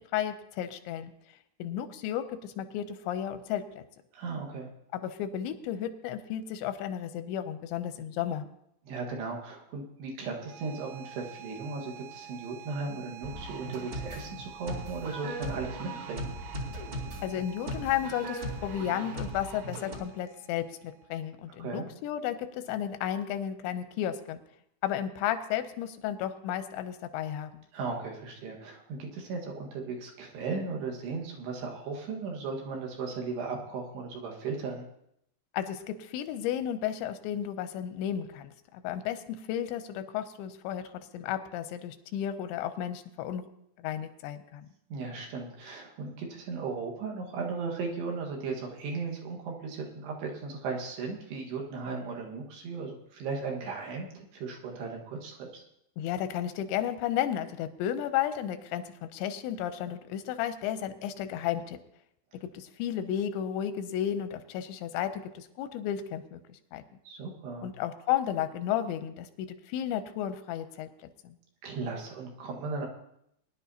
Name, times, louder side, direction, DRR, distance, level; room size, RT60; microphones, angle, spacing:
voice 1, 0.1-1.1 1.6-3.8 4.9-8.4 17.2-24.4 24.8-27.6 35.5-40.8 41.1-43.4 43.8-44.7 56.0-61.8 62.4-66.8 67.6-70.9 71.2-71.3, left 10 dB, 85° left, 10 dB, 3.0 m, -33 dB
voice 2, 4.1-4.7 8.8-16.3 21.5-21.9 27.7-34.9 44.9-55.6 67.1-67.7 71.6-72.9, right 4 dB, 70° right, 0 dB, 3.6 m, -36 dB
sound 1, 10.3-21.3, right 9 dB, 85° right, 3.2 m, -49 dB
sound 2, 13.2-20.0, right 1 dB, 40° right, 2.4 m, -38 dB
21.0 x 10.5 x 2.8 m, 0.76 s
omnidirectional pair, 5.2 m